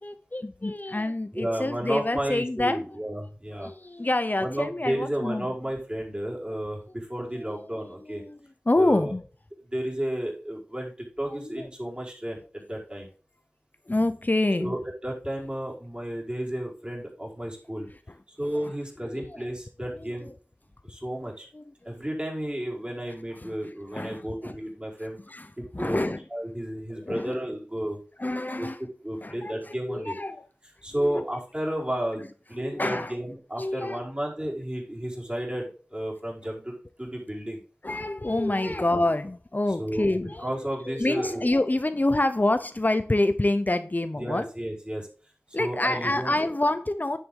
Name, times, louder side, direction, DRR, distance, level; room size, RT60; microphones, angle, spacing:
voice 1, 0.0-2.8 3.6-5.5 6.5-6.6 7.3-8.4 8.7-9.2 11.2-11.7 13.9-14.8 18.6-18.7 19.0-19.4 20.0-20.3 21.5-22.0 23.4-24.6 25.3-26.2 26.9-27.4 28.2-28.8 29.2-30.4 31.0-31.2 32.2-32.3 32.6-33.1 33.6-34.1 37.8-44.5 45.5-47.2, left 2 dB, 45° left, 0.7 m, -27 dB
voice 2, 1.3-3.7 4.4-8.2 8.8-9.1 9.7-10.9 11.2-13.1 14.6-17.9 18.3-20.3 20.8-21.5 21.8-25.2 25.6-26.0 26.3-28.0 28.3-28.7 29.0-30.1 30.8-32.2 32.5-37.6 38.6-38.7 39.8-40.1 40.4-41.5 44.2-45.1 45.5-46.3, right 1 dB, 25° right, 5.0 m, -32 dB
10.0 x 7.6 x 3.7 m
wide cardioid pair, 40°, 4 cm